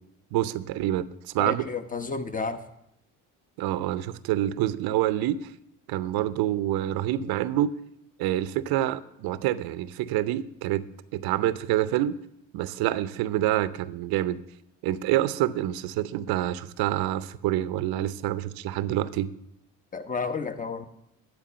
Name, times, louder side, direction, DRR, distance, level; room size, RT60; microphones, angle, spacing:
voice 1, 0.3-1.7 3.6-5.5 5.9-7.8 8.2-10.8 11.1-12.2 12.5-14.4 14.8-19.3, right 13 dB, 65° right, 16 dB, 0.6 m, -27 dB
voice 2, 1.4-2.6 19.9-20.9, left 4 dB, 20° left, 9 dB, 1.0 m, -31 dB
11.0 x 4.7 x 6.7 m, 0.80 s
hypercardioid pair, 60°, 39 cm